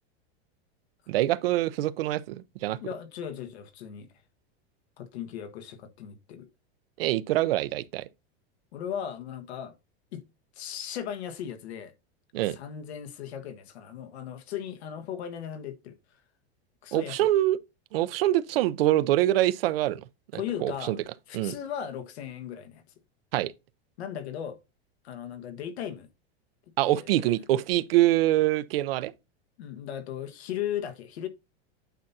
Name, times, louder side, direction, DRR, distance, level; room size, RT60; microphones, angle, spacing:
voice 1, 1.1-2.8 7.0-8.0 12.3-12.6 16.9-17.6 17.9-20.0 20.3-21.0 21.3-21.5 23.3-23.5 26.8-29.1, right 15 dB, 65° right, 0.7 m, -25 dB
voice 2, 2.8-4.1 5.0-6.5 8.7-9.7 10.1-10.2 10.5-11.9 12.5-16.0 16.8-17.3 20.3-20.9 21.3-22.8 24.0-24.6 25.0-26.1 26.8-27.3 29.6-31.3, left 9 dB, 80° left, 1.5 m, -37 dB
9.2 x 5.9 x 2.7 m
supercardioid pair, 175°, 32 cm